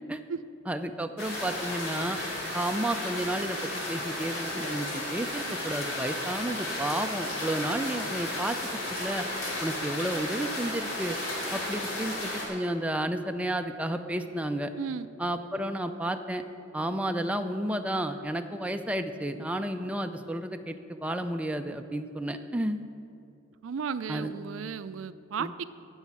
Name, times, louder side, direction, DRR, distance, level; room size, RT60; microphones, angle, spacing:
voice 1, 0.7-2.2 2.5-8.6 8.9-9.2 9.6-11.2 11.5-14.7 15.2-16.4 16.7-22.8 24.1-24.3 25.4-25.5, right 1 dB, 5° right, 6 dB, 0.4 m, -32 dB
sound 1, 1.2-12.5, left 1 dB, 85° left, 3.2 m, -34 dB
voice 2, 14.8-15.1 23.6-25.6, right 6 dB, 85° right, 14 dB, 0.4 m, -34 dB
9.9 x 7.2 x 8.7 m, 2.7 s
head